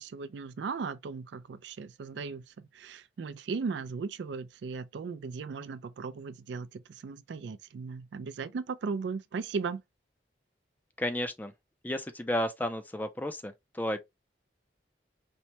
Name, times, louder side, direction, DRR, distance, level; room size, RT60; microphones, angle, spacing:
voice 1, 0.0-9.8, right 5 dB, 70° right, 0.3 m, -37 dB
voice 2, 11.0-11.5 11.8-14.0, left 1 dB, 10° left, 0.3 m, -32 dB
4.4 x 2.1 x 2.7 m
head